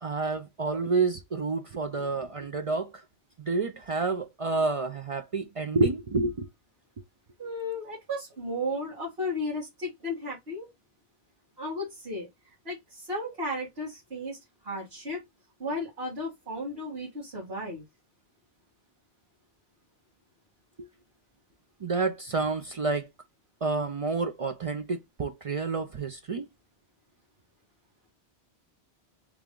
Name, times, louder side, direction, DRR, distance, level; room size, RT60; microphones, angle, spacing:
voice 1, 0.0-2.9 3.4-6.5 20.8-20.9 21.8-23.1 23.6-26.5, right 3 dB, 50° right, 0.4 m, -29 dB
voice 2, 7.4-10.7 11.6-12.3 12.7-14.4 14.6-15.2 15.6-17.8, left 1 dB, 70° right, 2.0 m, -34 dB
3.3 x 3.0 x 3.7 m
omnidirectional pair, 1.1 m